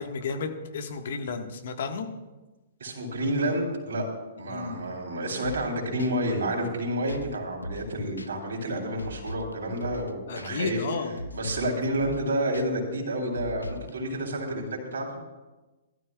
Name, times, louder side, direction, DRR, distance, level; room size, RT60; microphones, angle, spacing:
voice 1, 0.0-2.1 4.5-4.8 10.3-11.1, left 5 dB, 60° left, 5 dB, 1.5 m, -32 dB
voice 2, 2.8-4.1 4.4-10.8 11.3-15.2, right 1 dB, 65° right, 1 dB, 3.4 m, -29 dB
sound 1, 5.4-5.7 6.0-6.1 7.1-7.4 7.6-7.9 8.2-8.3 9.0-9.5 9.8-10.1 10.4-10.5 11.2-11.7 12.0-12.3 12.5-12.7 13.4-13.9, left 1 dB, 85° left, 0.6 m, -38 dB
19.0 x 12.5 x 2.4 m, 1.2 s
figure-of-eight pair, 115°, 0 cm